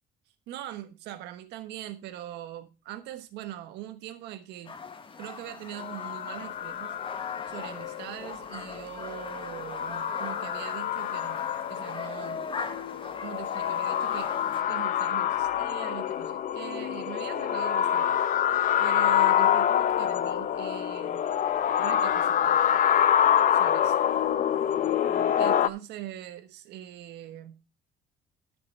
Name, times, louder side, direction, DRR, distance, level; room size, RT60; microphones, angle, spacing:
voice 1, 0.5-4.8 5.2-7.0 7.5-12.4 13.2-14.3 14.7-18.2 18.8-21.2 21.8-22.5 23.5-24.0 25.4-27.6, right 13 dB, 85° right, 1.3 m, -42 dB
sound 1, 4.6-14.6, left 5 dB, 30° left, 1.4 m, -40 dB
sound 2, 5.8-25.7, left 10 dB, 50° left, 0.8 m, -26 dB
11.0 x 6.9 x 5.3 m
cardioid pair, 110°, 17 cm